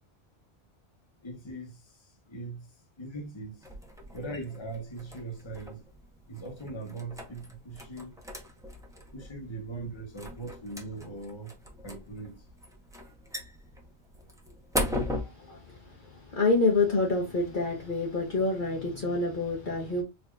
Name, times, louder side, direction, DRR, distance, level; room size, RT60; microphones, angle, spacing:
voice 1, 1.2-2.7 3.0-3.6 4.1-5.8 6.3-8.1 9.1-11.5 11.8-12.4, right 2 dB, 25° left, 1.1 m, -40 dB
sound 1, 3.6-15.2, left 1 dB, 5° right, 0.7 m, -39 dB
voice 2, 15.0-20.0, left 3 dB, 50° left, 1.0 m, -28 dB
4.7 x 2.8 x 2.3 m
omnidirectional pair, 1.2 m